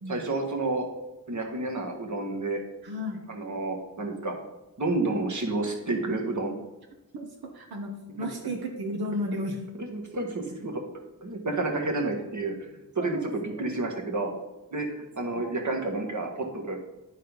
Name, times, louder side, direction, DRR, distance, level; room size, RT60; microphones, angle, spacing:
voice 1, 0.1-0.9 1.3-2.6 3.3-4.3 4.8-6.5 9.9-10.8 11.2-12.7 12.9-14.3 14.7-16.8, right 2 dB, 50° right, 2 dB, 1.6 m, -30 dB
voice 2, 2.8-3.3 7.1-9.7 13.0-13.3 13.6-13.7 14.7-14.8, equal, 85° right, 3 dB, 1.0 m, -34 dB
10.5 x 4.1 x 5.3 m, 1.0 s
wide cardioid pair, 85°, 37 cm